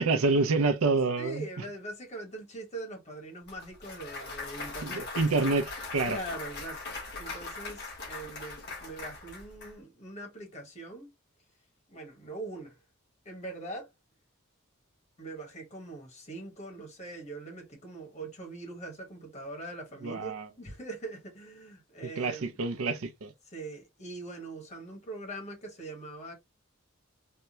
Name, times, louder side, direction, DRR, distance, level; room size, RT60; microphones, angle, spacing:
voice 1, 0.0-1.5 4.8-6.2 20.0-20.5 22.0-23.3, right 3 dB, 85° right, 0.5 m, -27 dB
voice 2, 1.2-5.1 6.0-11.1 11.9-12.8 13.2-13.9 15.2-22.5 23.5-26.3, right 2 dB, 35° left, 1.3 m, -42 dB
Clapping / Cheering / Applause, 3.5-9.7, left 3 dB, 55° left, 1.5 m, -40 dB
3.5 x 2.2 x 2.8 m
head